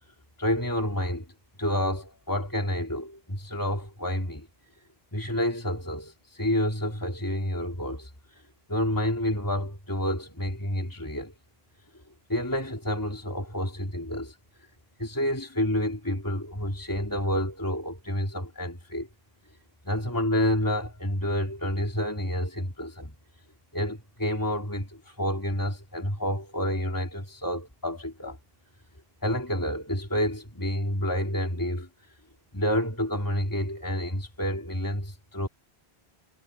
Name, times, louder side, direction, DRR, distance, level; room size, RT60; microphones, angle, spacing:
voice 1, 0.4-1.2 1.6-4.5 5.1-8.1 8.7-11.3 12.3-14.3 15.0-19.1 19.8-23.1 23.7-28.4 29.2-31.9 32.5-35.5, equal, 20° left, 2.9 m, -29 dB
omnidirectional pair, 1.0 m